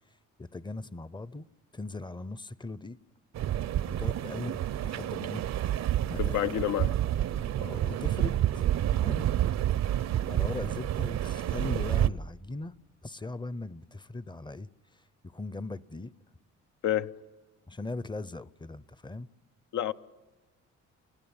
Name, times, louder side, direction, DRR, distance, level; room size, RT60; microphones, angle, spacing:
voice 1, 0.4-1.5 1.7-3.0 3.5-5.5 6.1-6.4 7.6-9.3 10.3-16.1 17.7-19.3, left 2 dB, 15° left, 0.6 m, -39 dB
sound 1, 3.3-12.1, right 12 dB, 60° right, 0.6 m, -29 dB
voice 2, 6.2-7.0 16.8-17.1 19.7-19.9, left 11 dB, 75° left, 0.8 m, -28 dB
29.0 x 16.5 x 8.8 m
cardioid pair, 90°, 30 cm